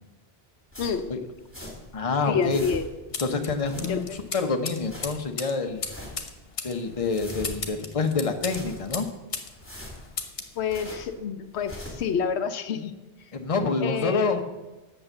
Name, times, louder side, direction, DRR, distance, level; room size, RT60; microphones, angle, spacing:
sound 1, 0.7-2.0 2.3-3.1 3.5-4.3 4.6-5.3 5.7-6.3 6.7-7.8 8.2-9.1 9.5-11.2 11.5-12.1, left 1 dB, 10° left, 2.8 m, -43 dB
voice 1, 0.8-1.1 2.2-2.8 3.8-4.2 10.6-12.9 13.8-14.4, left 6 dB, 80° left, 10 dB, 1.0 m, -28 dB
voice 2, 1.9-2.6 3.2-5.9 6.6-9.1 13.3-14.4, left 4 dB, 35° left, 5 dB, 0.9 m, -27 dB
sound 2, 3.1-9.5 9.8-10.6, left 5 dB, 65° left, 1.3 m, -36 dB
8.7 x 6.8 x 7.8 m, 1.1 s
omnidirectional pair, 1.1 m